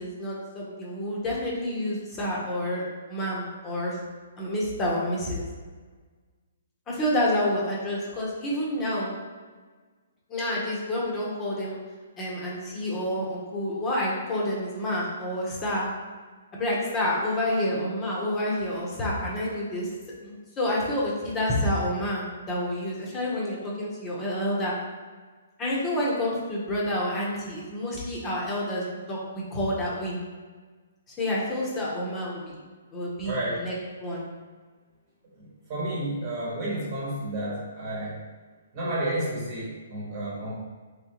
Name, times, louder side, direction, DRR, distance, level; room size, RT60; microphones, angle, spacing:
voice 1, 0.0-4.0 4.4-5.4 6.9-9.1 10.3-11.8 12.2-15.9 16.5-19.9 20.2-24.7 25.6-30.2 31.2-32.6 32.9-33.7 34.0-34.2, left 1 dB, 20° left, -5 dB, 0.8 m, -29 dB
voice 2, 33.2-33.7 35.4-38.2 38.7-40.5, right 1 dB, 40° right, -6 dB, 1.2 m, -31 dB
3.7 x 3.3 x 3.0 m, 1.4 s
hypercardioid pair, 150°, 0 cm